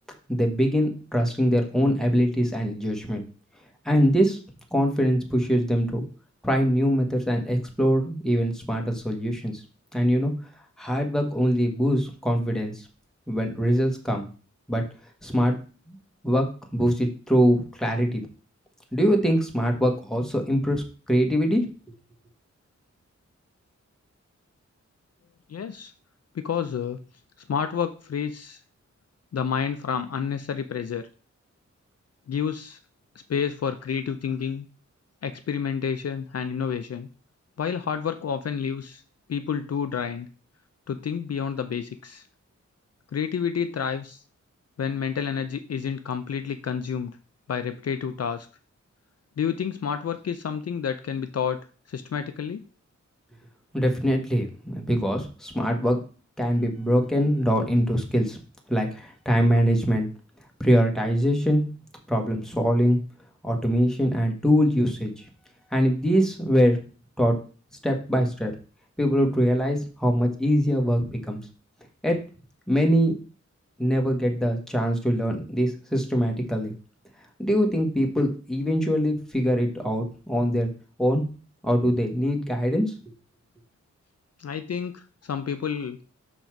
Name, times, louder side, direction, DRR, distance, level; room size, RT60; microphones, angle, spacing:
voice 1, 0.3-3.2 3.8-4.4 4.7-6.1 6.4-9.6 9.9-10.3 10.8-12.9 13.3-14.3 14.7-14.8 15.2-15.6 15.9-16.0 16.2-16.4 16.7-18.2 18.9-21.7 53.7-56.0 56.4-58.4 58.7-60.1 60.6-61.6 62.1-63.0 63.4-65.2 65.7-66.8 67.2-67.4 67.8-68.5 69.0-71.4 72.0-72.2 72.7-73.1 73.8-76.7 77.4-80.7 81.0-81.2 81.6-82.9, equal, ahead, 1 dB, 1.2 m, -23 dB
voice 2, 25.5-25.9 26.3-27.0 27.5-28.6 29.3-31.1 32.3-32.8 33.3-34.6 35.2-37.1 37.6-39.0 39.3-40.3 40.9-42.2 43.1-44.2 44.8-47.2 47.5-48.5 49.4-52.6 84.4-86.0, left 7 dB, 60° left, 9 dB, 0.5 m, -29 dB
6.0 x 4.0 x 4.5 m, 0.37 s
wide cardioid pair, 110°, 29 cm